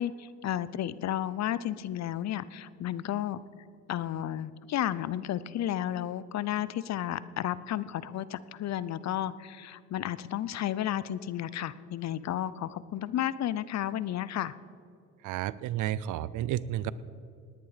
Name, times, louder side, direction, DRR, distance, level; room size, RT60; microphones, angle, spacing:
voice 1, 0.0-3.4 3.9-14.5, left 11 dB, 60° left, 17 dB, 0.6 m, -32 dB
voice 2, 15.2-16.9, right 12 dB, 85° right, 19 dB, 0.5 m, -31 dB
18.5 x 10.5 x 5.0 m, 2.5 s
cardioid pair, 90°, 30 cm